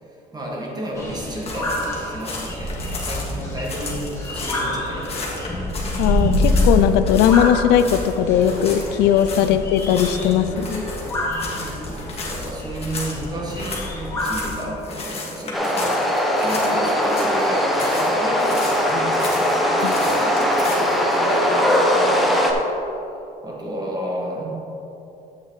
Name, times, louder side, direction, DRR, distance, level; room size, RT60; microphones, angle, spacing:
voice 1, 0.3-5.2 9.4-9.5 11.5-22.3 23.4-24.5, right 1 dB, 25° right, -2 dB, 1.9 m, -32 dB
sound 1, 1.0-14.5, left 1 dB, 15° left, 2.0 m, -26 dB
sound 2, 1.4-4.7 5.0-7.5 7.8-8.1 8.4-16.8 17.0-18.1 18.4-21.0, left 3 dB, 35° left, 1.9 m, -34 dB
voice 2, 6.0-10.9 19.8-19.9, left 9 dB, 90° left, 10 dB, 0.4 m, -18 dB
sound 3, 15.5-22.5, equal, ahead, 1.0 m, -20 dB
8.0 x 7.4 x 4.0 m, 2.9 s
cardioid pair, 110°, 17 cm